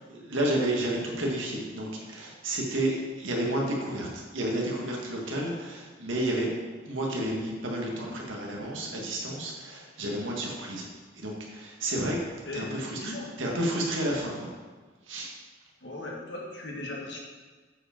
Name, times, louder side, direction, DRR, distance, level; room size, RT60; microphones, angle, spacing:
voice 1, 0.1-6.5 6.8-10.8 11.2-12.2 12.5-14.5 15.1-15.3, right 1 dB, 90° right, -1 dB, 1.6 m, -31 dB
voice 2, 10.1-10.5 12.4-13.3 15.8-17.2, left 2 dB, 65° left, -2 dB, 1.6 m, -38 dB
7.9 x 4.9 x 4.4 m, 1.4 s
head